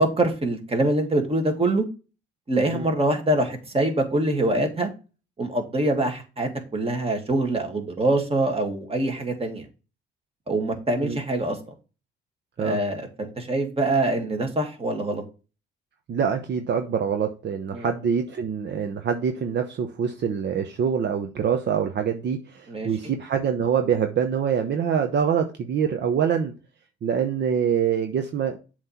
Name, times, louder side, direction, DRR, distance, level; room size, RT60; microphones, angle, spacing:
voice 1, 0.0-1.9 2.5-4.9 5.4-9.7 10.5-11.7 12.6-15.2 17.7-17.9 22.7-23.1, right 1 dB, 25° right, 3 dB, 2.1 m, -24 dB
voice 2, 16.1-26.5 27.0-28.6, right 7 dB, 55° right, 5 dB, 0.9 m, -25 dB
7.5 x 3.2 x 5.7 m, 0.32 s
supercardioid pair, 70°, 21 cm